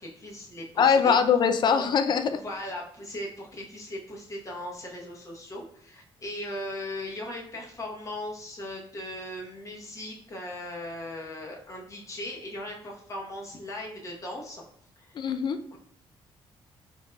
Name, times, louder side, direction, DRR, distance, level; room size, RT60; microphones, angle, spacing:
voice 1, 0.0-1.2 1.8-1.9 2.3-14.6 15.0-15.2 15.7-15.8, left 1 dB, 30° left, -2 dB, 0.9 m, -38 dB
voice 2, 0.8-2.4 15.2-15.6, left 6 dB, 50° left, 8 dB, 0.3 m, -22 dB
3.6 x 3.2 x 2.2 m, 0.64 s
cardioid pair, 115°, 10 cm